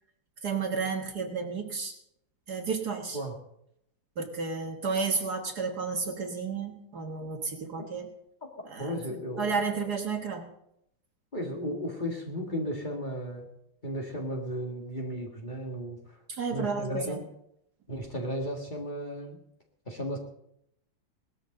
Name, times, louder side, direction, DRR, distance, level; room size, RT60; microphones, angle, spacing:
voice 1, 0.4-1.9 2.5-3.2 4.2-8.1 8.7-9.0 9.4-10.4 16.3-17.2, right 5 dB, 55° right, 4 dB, 1.9 m, -32 dB
voice 2, 8.8-9.8 11.3-13.5 13.8-16.2 16.5-17.3 17.9-19.4 19.9-20.2, equal, 25° left, 0 dB, 2.1 m, -34 dB
19.0 x 13.0 x 3.9 m, 0.77 s
omnidirectional pair, 2.2 m